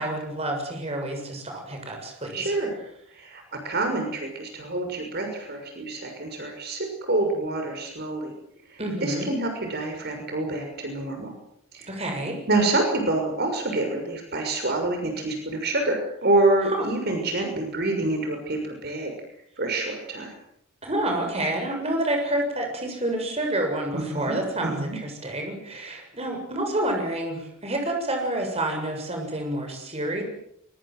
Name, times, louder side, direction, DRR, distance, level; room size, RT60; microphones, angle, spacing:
voice 1, 0.0-2.5 8.8-9.3 11.9-12.4 16.7-16.8 20.8-30.2, right 1 dB, 30° right, 2 dB, 7.1 m, -28 dB
voice 2, 2.3-2.8 3.1-8.3 8.7-11.3 11.7-11.9 12.5-19.1 19.6-20.3 23.9-24.4 24.6-25.0, right 2 dB, 50° right, 4 dB, 6.4 m, -27 dB
24.5 x 24.0 x 7.8 m, 0.73 s
head